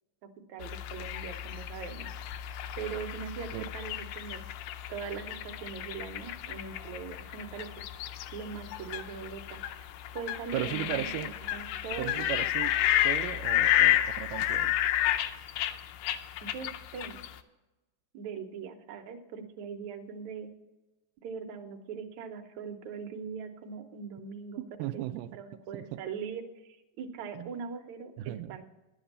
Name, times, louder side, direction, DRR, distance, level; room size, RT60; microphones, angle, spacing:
voice 1, 0.5-2.1 2.8-4.4 4.9-7.7 8.3-9.6 10.1-12.2 16.4-17.2 18.1-20.5 21.2-24.6 24.9-25.1 25.3-28.6, right 6 dB, 70° right, 5 dB, 2.1 m, -41 dB
sound 1, 0.6-17.4, left 13 dB, 80° left, 2.2 m, -31 dB
voice 2, 10.5-11.3 12.0-14.8 24.8-25.4 25.7-25.9 27.3-27.5 28.2-28.6, right 14 dB, 90° right, 10 dB, 2.1 m, -36 dB
11.0 x 8.0 x 6.7 m, 1.1 s
omnidirectional pair, 3.7 m